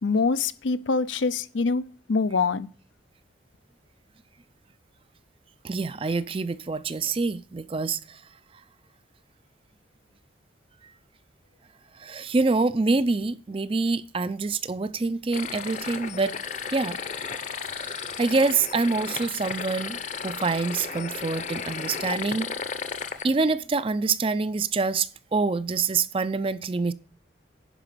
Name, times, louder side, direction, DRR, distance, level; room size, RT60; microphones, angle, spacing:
voice 1, 0.0-2.7, left 4 dB, 80° left, 0.6 m, -25 dB
voice 2, 5.6-8.2 12.0-16.3 16.7-17.0 17.8-20.0 20.2-22.5 23.2-26.9, right 4 dB, 30° right, 0.4 m, -26 dB
sound 1, 15.3-23.2, left 6 dB, 40° left, 0.8 m, -34 dB
11.0 x 5.0 x 6.6 m
head